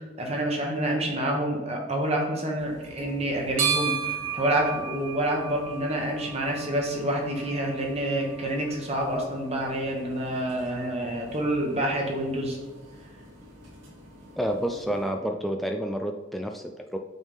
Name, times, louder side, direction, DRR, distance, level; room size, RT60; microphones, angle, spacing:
voice 1, 0.2-12.6, right 1 dB, 30° right, 0 dB, 1.3 m, -28 dB
sound 1, 2.6-15.1, right 5 dB, 75° right, 2.1 m, -36 dB
voice 2, 14.4-17.0, equal, ahead, 3 dB, 0.3 m, -29 dB
8.0 x 3.6 x 5.5 m, 1.2 s
head